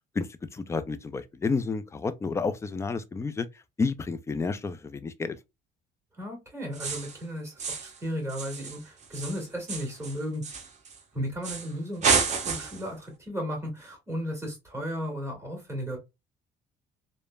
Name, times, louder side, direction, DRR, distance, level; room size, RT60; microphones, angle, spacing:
voice 1, 0.2-3.5 3.8-5.4, left 4 dB, 15° left, 0.3 m, -30 dB
voice 2, 6.2-10.5 11.1-16.0, equal, 15° right, 1.8 m, -35 dB
sound 1, 6.7-7.2 7.6-8.0 8.3-11.0 11.4-11.7 12.0-12.9, right 5 dB, 45° right, 0.8 m, -30 dB
3.2 x 2.0 x 2.3 m
cardioid pair, 110°, 17 cm